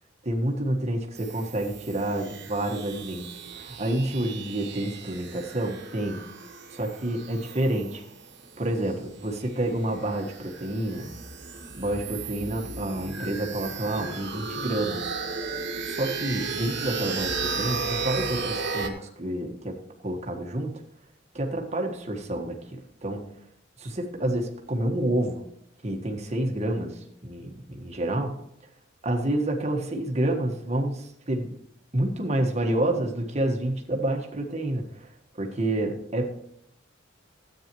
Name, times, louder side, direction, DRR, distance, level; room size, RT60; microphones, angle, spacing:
voice 1, 0.2-6.2 6.7-8.0 8.6-11.1 11.7-15.1 15.9-19.8 20.0-20.8 21.3-23.2 23.8-25.4 25.8-28.4 29.0-31.5 31.9-35.1 35.4-36.3, right 1 dB, 30° right, 2 dB, 1.4 m, -29 dB
sound 1, 1.2-18.9, right 4 dB, 55° right, 1.5 m, -35 dB
13.5 x 8.9 x 3.0 m, 0.73 s
head